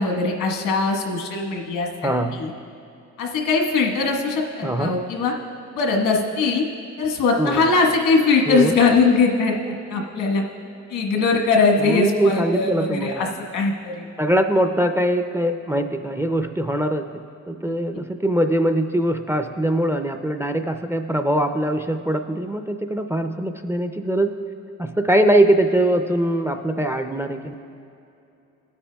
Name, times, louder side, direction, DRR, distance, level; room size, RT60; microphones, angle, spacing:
voice 1, 0.0-2.5 3.2-5.3 5.7-6.6 7.0-10.4 10.9-13.3 13.5-14.1 17.7-17.8, left 4 dB, 85° left, 1 dB, 1.4 m, -21 dB
voice 2, 2.0-2.4 4.6-5.0 7.4-7.6 8.5-8.7 11.8-13.3 14.2-17.1 17.5-24.3 24.8-27.5, right 1 dB, 10° right, 6 dB, 0.4 m, -22 dB
17.0 x 8.5 x 2.3 m, 2.7 s
cardioid pair, 90°, 30 cm